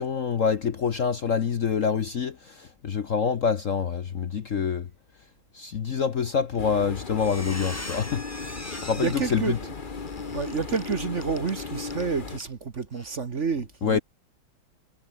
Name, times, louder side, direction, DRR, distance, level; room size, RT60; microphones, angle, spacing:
voice 1, 0.0-4.9 5.5-9.6 13.8-14.0, left 6 dB, 50° left, 1.2 m, -26 dB
Squeak, 6.5-6.8 7.1-12.1 12.4-12.5 12.9-13.1, left 1 dB, 5° left, 3.3 m, -41 dB
sound 1, 6.6-12.4, left 4 dB, 30° left, 1.3 m, -36 dB
voice 2, 8.5-9.8 10.3-14.0, right 5 dB, 40° right, 1.5 m, -30 dB
omnidirectional pair, 2.2 m